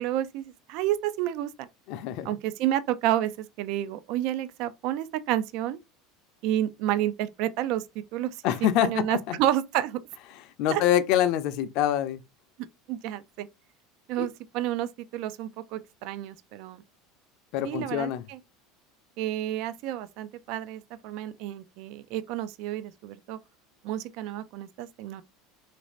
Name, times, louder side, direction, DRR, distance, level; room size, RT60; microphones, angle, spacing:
voice 1, 0.0-1.7 2.2-5.8 6.4-7.8 8.1-8.4 8.8-10.0 10.7-10.8 12.9-13.5 14.1-16.8 17.6-18.4 19.2-23.4 23.8-25.2, right 12 dB, 60° right, 0.3 m, -30 dB
voice 2, 1.9-2.3 8.4-9.4 10.6-12.2 14.2-14.3 17.5-18.2, left 11 dB, 60° left, 0.5 m, -25 dB
3.1 x 2.5 x 3.1 m
supercardioid pair, 125°, 0 cm